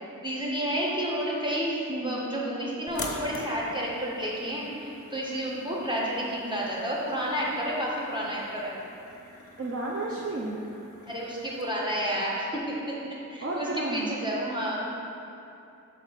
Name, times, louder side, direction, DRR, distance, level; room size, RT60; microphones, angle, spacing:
voice 1, 0.2-1.7 2.0-8.7 11.1-14.9, equal, 15° right, -5 dB, 1.6 m, -30 dB
voice 2, 1.9-2.2 9.6-10.6 13.4-14.1, right 2 dB, 40° right, -3 dB, 0.7 m, -32 dB
sound 1, 2.9-11.6, left 2 dB, 40° left, 1.0 m, -45 dB
6.5 x 3.9 x 6.0 m, 2.7 s
wide cardioid pair, 70°, 35 cm